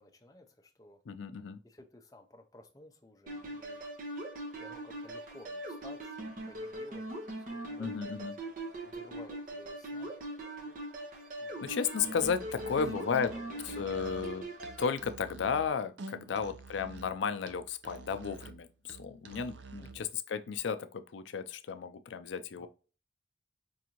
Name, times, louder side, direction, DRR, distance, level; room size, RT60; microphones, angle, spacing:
voice 1, 0.0-1.0 1.6-3.8 4.6-8.4 8.8-10.1 11.4-11.8 12.0-12.1 12.6-14.2 16.3-16.6 19.8-20.0 22.6-22.7, left 1 dB, 20° left, 0.5 m, -55 dB
voice 2, 1.1-1.6 7.8-8.3 11.6-13.3 13.8-14.5 14.8-22.7, left 6 dB, 80° left, 0.4 m, -34 dB
sound 1, 3.3-15.0, right 1 dB, 45° right, 0.8 m, -41 dB
Musical instrument, 12.1-20.1, right 3 dB, 75° right, 0.5 m, -49 dB
4.6 x 2.5 x 2.9 m
head